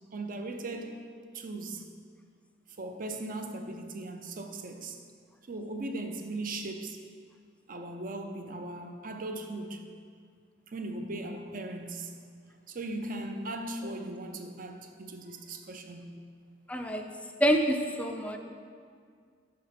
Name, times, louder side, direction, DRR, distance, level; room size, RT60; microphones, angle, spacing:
voice 1, 0.1-1.1 1.3-1.9 2.8-5.0 5.5-7.0 7.7-9.8 10.7-12.1 12.7-16.2, right 2 dB, 45° right, 5 dB, 0.6 m, -38 dB
voice 2, 16.7-17.0 17.4-18.4, equal, 5° left, 5 dB, 0.4 m, -27 dB
6.4 x 5.6 x 5.8 m, 2.1 s
head